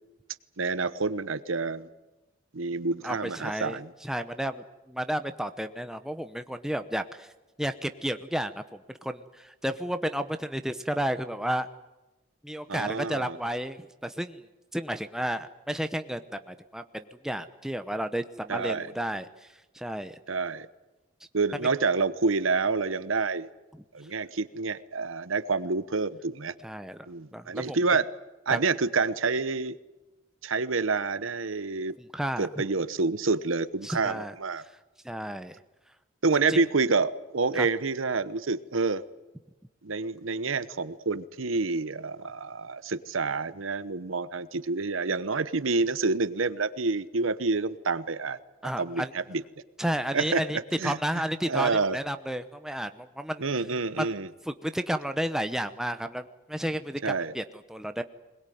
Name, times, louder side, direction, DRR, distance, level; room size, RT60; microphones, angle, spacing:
voice 1, 0.6-1.9 2.5-3.9 12.7-13.4 18.5-18.9 20.3-20.7 21.3-23.5 23.9-26.5 27.1-28.1 28.5-29.8 30.4-32.0 32.4-34.6 36.2-39.0 39.8-48.4 48.8-49.4 50.1-51.0 51.4-52.0 53.4-54.3 57.0-57.3, right 4 dB, 80° right, 14 dB, 0.9 m, -28 dB
voice 2, 3.0-7.3 7.6-11.7 12.4-14.4 14.7-19.3 19.7-20.2 26.6-27.0 27.3-27.8 28.5-28.6 32.0-32.5 33.8-34.3 35.0-35.5 36.5-36.6 37.5-37.7 48.6-49.1 49.8-53.4 53.9-54.1 54.5-57.4 57.7-58.0, equal, 5° right, 9 dB, 0.8 m, -32 dB
21.0 x 21.0 x 9.3 m, 1.1 s
head